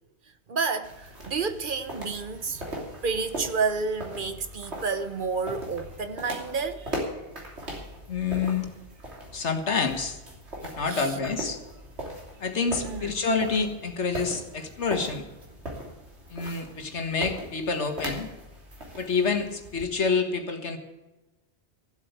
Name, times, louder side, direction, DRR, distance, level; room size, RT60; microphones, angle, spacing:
voice 1, 0.5-2.7 3.0-7.0 10.8-11.1 12.8-13.2, right 4 dB, 50° right, 1.0 m, -30 dB
sound 1, 0.8-19.8, right 1 dB, 75° right, 3.4 m, -39 dB
voice 2, 8.1-8.7 9.3-10.2 10.6-11.6 12.4-15.2 16.3-18.3 19.0-20.8, left 4 dB, 85° left, 1.9 m, -28 dB
15.5 x 8.2 x 8.0 m
omnidirectional pair, 1.1 m